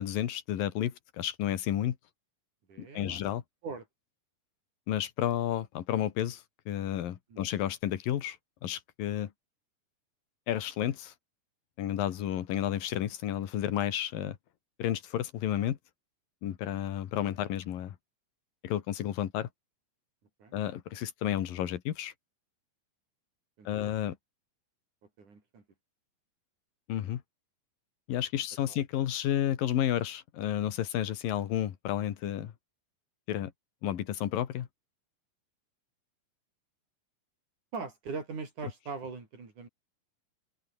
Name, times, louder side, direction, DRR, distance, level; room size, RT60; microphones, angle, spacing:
voice 1, 0.0-2.0 2.8-3.4 4.9-9.3 10.5-11.1 11.8-14.4 14.8-15.8 16.4-18.0 18.6-19.5 20.5-22.1 23.6-24.2 26.9-27.2 28.1-32.5 33.3-33.5 33.8-34.7, left 11 dB, 85° left, 3.4 m, -31 dB
voice 2, 2.7-3.2 3.6-3.9 7.3-7.5 20.4-20.5 23.6-23.8 25.2-25.6 28.7-28.8 37.7-39.7, right 4 dB, 60° right, 6.9 m, -41 dB
omnidirectional pair, 3.9 m